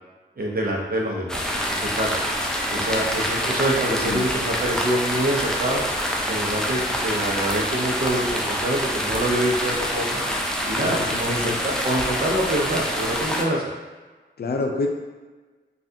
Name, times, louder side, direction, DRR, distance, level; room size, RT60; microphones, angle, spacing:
voice 1, 0.4-2.2 2.7-5.8 6.3-10.2 10.7-13.6, right 1 dB, 50° right, -2 dB, 0.7 m, -25 dB
sound 1, 1.3-13.4, equal, 5° left, 0.5 m, -26 dB
voice 2, 10.8-11.6 14.4-14.9, left 3 dB, 50° left, 3 dB, 0.5 m, -28 dB
3.3 x 2.4 x 2.7 m, 1.3 s
cardioid pair, 45°, 20 cm